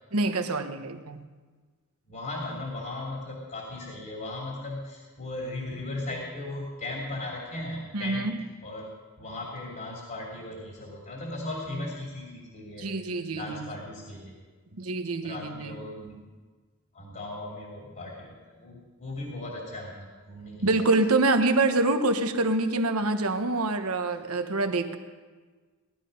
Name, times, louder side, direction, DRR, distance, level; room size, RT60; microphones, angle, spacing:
voice 1, 0.1-1.2 7.9-8.4 12.8-13.7 14.7-15.8 20.6-25.0, right 2 dB, 75° right, 7 dB, 1.2 m, -26 dB
voice 2, 2.1-8.3 8.6-8.9 9.2-12.9 13.3-14.3 15.2-16.2 16.9-20.8, left 2 dB, 40° left, -2 dB, 2.9 m, -37 dB
18.5 x 11.5 x 5.4 m, 1.4 s
head